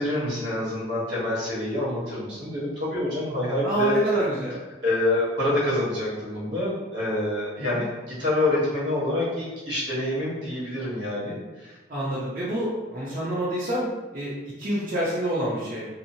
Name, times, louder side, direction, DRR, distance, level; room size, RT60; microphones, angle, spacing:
voice 1, 0.0-4.2 4.8-11.8, left 1 dB, 70° right, -7 dB, 1.2 m, -26 dB
voice 2, 3.6-4.6 7.6-7.8 11.9-13.9 14.1-14.3 14.6-15.9, equal, 45° right, -10 dB, 0.6 m, -27 dB
2.8 x 2.0 x 2.7 m, 1.2 s
head